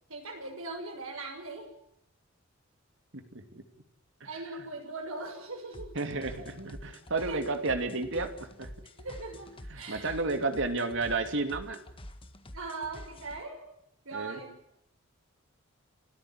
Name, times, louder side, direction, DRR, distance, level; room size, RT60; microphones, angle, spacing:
voice 1, 0.1-1.7 4.2-5.9 6.4-6.5 7.1-7.6 9.0-10.4 12.5-13.6 14.0-14.5, right 3 dB, 85° right, 4 dB, 6.5 m, -40 dB
voice 2, 3.1-3.6 5.9-8.7 9.7-11.8 14.1-14.4, right 3 dB, 60° right, 7 dB, 2.7 m, -32 dB
sound 1, 5.7-13.4, left 1 dB, 25° left, 1.7 m, -47 dB
29.5 x 13.5 x 9.8 m, 0.76 s
head